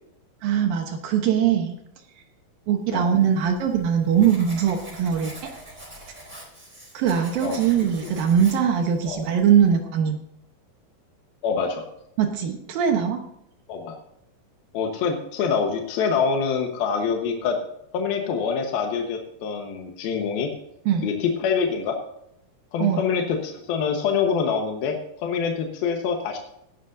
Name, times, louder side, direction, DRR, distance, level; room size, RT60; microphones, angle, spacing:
voice 1, 0.4-1.8 2.7-5.3 6.9-10.2 12.2-13.2 20.9-21.1 22.8-23.0, right 8 dB, 75° right, 4 dB, 2.8 m, -21 dB
Writing, 3.1-9.8, right 1 dB, 10° right, 3.6 m, -44 dB
voice 2, 11.4-11.8 13.7-14.0 14.7-17.6 17.9-20.5 21.0-21.9 22.7-25.0 25.2-26.4, left 6 dB, 80° left, 2 dB, 3.1 m, -25 dB
17.5 x 11.5 x 2.7 m, 0.77 s
omnidirectional pair, 4.2 m